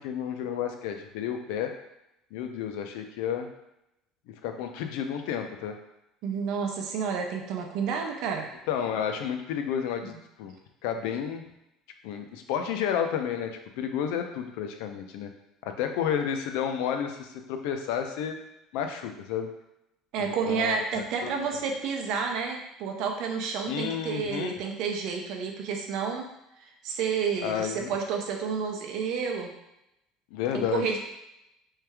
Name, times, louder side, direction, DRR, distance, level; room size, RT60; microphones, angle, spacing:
voice 1, 0.0-1.7 2.3-3.5 4.4-5.8 8.7-10.5 10.8-11.4 12.0-15.3 15.6-18.4 18.7-19.5 20.2-21.3 23.7-24.6 27.4-27.9 30.3-31.0, left 8 dB, 75° left, 5 dB, 0.5 m, -31 dB
voice 2, 6.2-8.5 20.1-26.3 26.8-29.5 30.5-31.0, right 6 dB, 55° right, 2 dB, 0.6 m, -30 dB
3.4 x 3.2 x 3.4 m, 0.86 s
cardioid pair, 170°, 0 cm